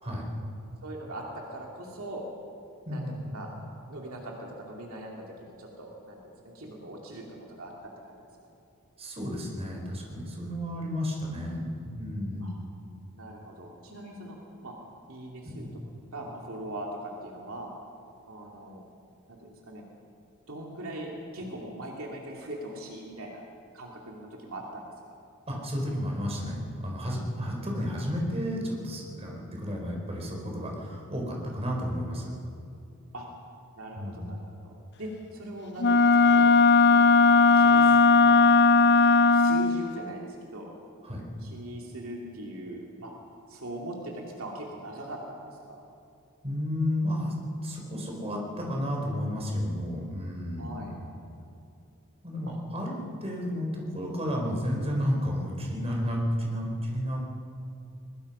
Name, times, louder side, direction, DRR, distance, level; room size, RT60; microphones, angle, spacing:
voice 1, 0.8-2.3 2.9-3.0 3.3-3.5 3.9-8.2 12.4-12.5 13.1-14.4 14.6-14.7 15.1-15.7 16.1-17.7 18.3-18.8 19.3-19.8 20.5-23.4 23.7-24.8 33.1-33.3 33.8-36.4 36.9-38.0 38.2-38.3 38.7-40.7 41.4-43.1 43.5-45.9 50.6-50.9 52.5-52.6, right 1 dB, 70° right, -1 dB, 2.7 m, -41 dB
voice 2, 2.8-3.3 9.0-12.4 15.6-15.7 25.5-32.3 33.9-34.3 41.0-41.2 46.4-50.9 52.2-57.2, equal, 30° right, -1 dB, 4.5 m, -32 dB
Wind instrument woodwind instrument, 35.8-39.8, left 4 dB, 50° left, 0.6 m, -18 dB
21.5 x 21.5 x 5.6 m, 2.6 s
head